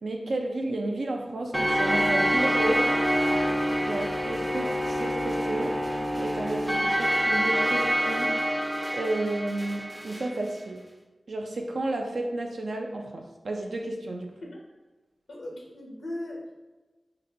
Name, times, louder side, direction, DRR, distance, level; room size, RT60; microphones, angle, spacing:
voice 1, 0.0-2.9 3.8-5.8 6.2-8.3 8.9-10.8 11.3-14.3, right 2 dB, 75° right, 2 dB, 0.3 m, -32 dB
sound 1, 1.5-10.3, equal, ahead, 0.4 m, -26 dB
voice 2, 15.3-16.5, left 1 dB, 90° left, -1 dB, 0.5 m, -37 dB
3.8 x 2.2 x 2.7 m, 1.2 s
cardioid pair, 45°, 0 cm